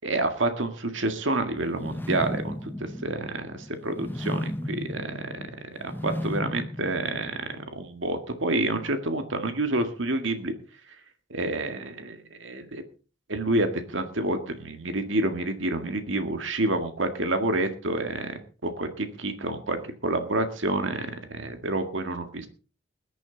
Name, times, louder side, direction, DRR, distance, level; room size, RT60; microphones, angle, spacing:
voice 1, 0.0-2.7 3.0-5.4 5.8-10.5 11.3-12.8 13.3-22.5, right 2 dB, 75° right, 7 dB, 1.9 m, -28 dB
sound 1, 1.6-7.7, left 1 dB, 10° left, 0.6 m, -35 dB
20.5 x 10.5 x 3.9 m, 0.36 s
head